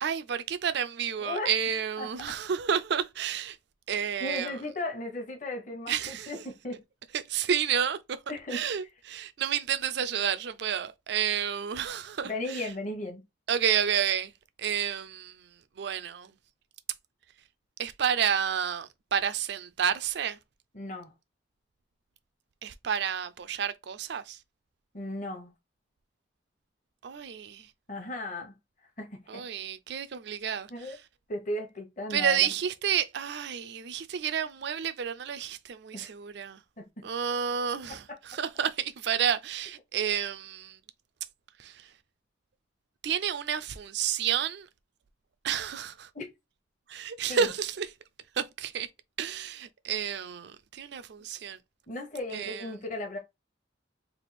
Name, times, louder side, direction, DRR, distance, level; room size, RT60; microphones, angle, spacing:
voice 1, 0.0-3.6 3.9-4.5 5.9-6.3 7.1-8.0 8.5-12.6 13.5-14.3 14.6-15.3 15.8-16.3 17.8-20.4 22.6-24.4 27.0-27.7 29.3-30.7 32.1-36.6 37.0-38.0 38.3-40.8 41.6-41.7 43.0-44.7 45.4-46.1 46.9-47.9 48.4-48.9 49.2-51.6 52.3-52.7, right 8 dB, 60° right, 0.4 m, -30 dB
voice 2, 1.2-1.5 2.0-2.1 4.2-6.8 8.3-8.6 12.2-13.2 20.7-21.1 24.9-25.5 27.9-28.6 29.0-29.4 30.7-31.0 31.3-32.5 35.9-36.1 36.8-36.9 38.1-38.2 46.1-46.2 47.3-47.5 51.9-53.2, left 1 dB, 40° left, 1.0 m, -36 dB
3.5 x 2.4 x 4.1 m
head